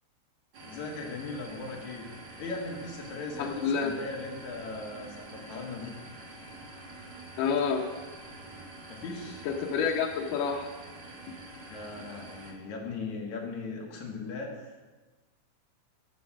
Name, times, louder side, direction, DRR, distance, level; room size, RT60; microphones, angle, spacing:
sound 1, 0.5-12.5, right 2 dB, 45° right, 1.6 m, -46 dB
voice 1, 0.7-2.1 2.4-5.9 8.9-9.4 11.7-14.8, left 3 dB, 65° left, 0 dB, 2.6 m, -38 dB
voice 2, 3.4-4.0 7.4-7.9 9.4-10.7, left 6 dB, 85° left, 1 dB, 2.4 m, -28 dB
9.4 x 7.8 x 5.9 m, 1.3 s
omnidirectional pair, 3.8 m